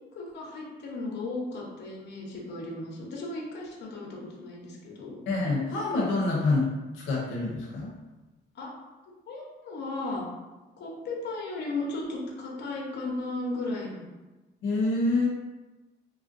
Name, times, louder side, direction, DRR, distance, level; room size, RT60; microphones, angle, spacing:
voice 1, 0.1-5.2 8.5-8.7 9.3-10.3 10.8-14.1, left 2 dB, 60° left, -2 dB, 0.8 m, -35 dB
voice 2, 5.3-6.7 7.1-7.9 14.6-15.3, left 2 dB, 90° left, -4 dB, 0.7 m, -26 dB
3.1 x 2.4 x 2.5 m, 1.1 s
cardioid pair, 90°, 20 cm